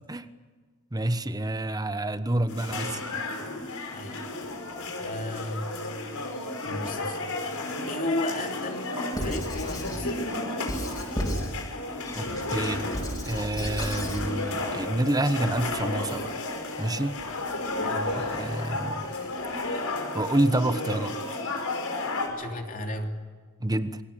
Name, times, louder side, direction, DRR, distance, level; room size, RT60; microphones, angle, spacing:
voice 1, 0.9-3.0 12.2-12.9 13.3-16.4 16.8-17.2 18.2-19.1 20.1-21.2 23.6-24.0, right 1 dB, 15° right, 11 dB, 1.1 m, -28 dB
sound 1, 2.5-22.3, left 2 dB, 75° left, 5.5 m, -33 dB
voice 2, 2.8-3.5 3.9-4.2 5.0-5.8 6.6-7.4 7.9-10.2 17.8-18.1 22.4-23.2, left 1 dB, 40° left, 3 dB, 3.0 m, -34 dB
Squeak / Writing, 9.1-10.1 10.7-11.6 12.0-14.3, equal, 20° left, 6.2 m, -33 dB
sound 2, 12.1-20.4, right 2 dB, 80° right, 3.4 m, -46 dB
27.5 x 23.5 x 6.9 m, 1.5 s
head